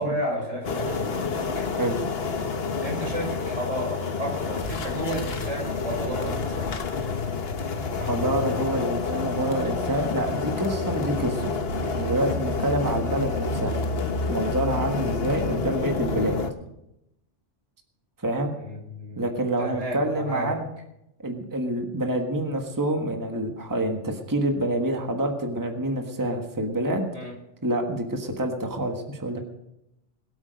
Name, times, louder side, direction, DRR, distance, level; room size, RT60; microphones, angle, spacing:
voice 1, 0.0-1.7 2.8-6.7 18.6-19.2 19.6-20.5 27.1-27.3, right 1 dB, 80° right, -1 dB, 5.3 m, -32 dB
sound 1, 0.6-16.5, left 4 dB, 60° left, 1.3 m, -28 dB
voice 2, 8.0-11.6 11.9-13.8 14.3-16.4 18.2-18.5 19.2-20.6 21.2-27.1 27.6-29.4, right 1 dB, 15° right, 3 dB, 1.5 m, -27 dB
21.5 x 8.7 x 5.3 m, 0.85 s
omnidirectional pair, 1.2 m